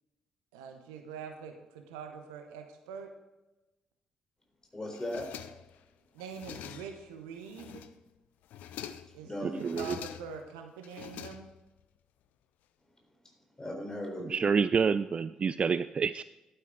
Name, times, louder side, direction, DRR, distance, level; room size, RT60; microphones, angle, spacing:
voice 1, 0.5-3.1 6.1-7.9 9.1-11.5, right 6 dB, 75° right, 5 dB, 1.1 m, -44 dB
voice 2, 4.7-5.3 9.2-9.6 13.2-14.4, left 1 dB, 20° left, 1 dB, 3.8 m, -38 dB
sound 1, 4.9-5.8 6.2-7.1 7.4-8.1 8.4-9.2 9.6-10.5 10.8-11.8, left 10 dB, 60° left, 0.5 m, -45 dB
voice 3, 9.4-10.0 14.2-16.2, right 6 dB, 40° right, 14 dB, 0.3 m, -28 dB
11.5 x 9.5 x 3.8 m, 1.0 s
figure-of-eight pair, 40°, 3 cm